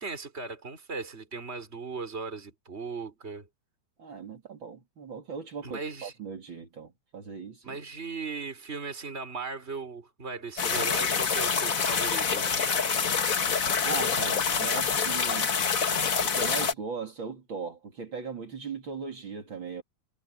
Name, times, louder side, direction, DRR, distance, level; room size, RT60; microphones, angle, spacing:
voice 1, 0.0-3.5 5.6-6.1 7.6-12.5, right 4 dB, 20° right, 4.7 m, -37 dB
voice 2, 4.0-7.8 13.8-15.5 16.2-19.8, right 5 dB, 40° right, 3.4 m, -38 dB
sound 1, 10.6-16.7, left 6 dB, 45° left, 1.2 m, -26 dB
omnidirectional pair, 3.5 m